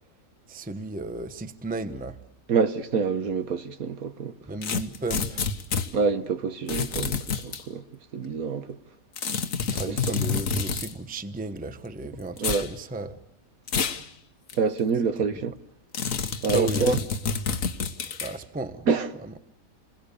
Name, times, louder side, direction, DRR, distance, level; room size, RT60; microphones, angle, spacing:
voice 1, 0.5-2.2 4.4-5.5 9.7-13.2 15.2-15.4 16.5-17.1 18.2-18.9 19.2-19.4, right 2 dB, 5° right, 0.8 m, -34 dB
voice 2, 2.5-4.3 5.9-7.2 7.4-7.8 8.1-8.7 12.4-12.6 14.6-15.5 16.4-17.0 18.9-19.1, right 5 dB, 60° right, 1.5 m, -26 dB
sound 1, 4.6-5.9 6.7-7.6 9.2-10.9 12.4-12.7 13.7-14.0 14.5-14.6 15.9-18.3, left 5 dB, 55° left, 1.5 m, -28 dB
29.0 x 21.5 x 6.8 m
omnidirectional pair, 1.8 m